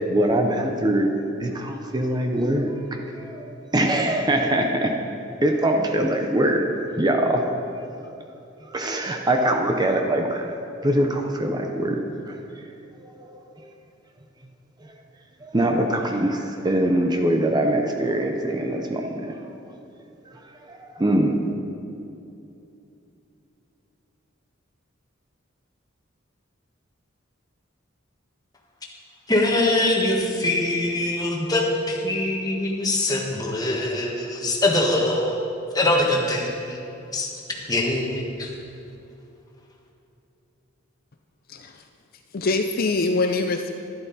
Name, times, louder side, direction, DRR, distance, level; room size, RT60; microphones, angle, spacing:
voice 1, 0.0-3.5 3.7-5.0 5.4-6.7 7.0-7.4 8.6-10.5 10.8-12.4 13.0-13.4 15.4-19.4 20.3-20.4 20.7-21.4, right 1 dB, 20° right, 3 dB, 0.7 m, -23 dB
voice 2, 29.3-35.4 35.7-36.8 37.1-38.5, left 1 dB, 20° left, -1 dB, 1.5 m, -23 dB
voice 3, 41.5-41.8 42.3-43.7, left 3 dB, 45° left, 5 dB, 0.5 m, -24 dB
12.0 x 11.5 x 4.1 m, 2.7 s
head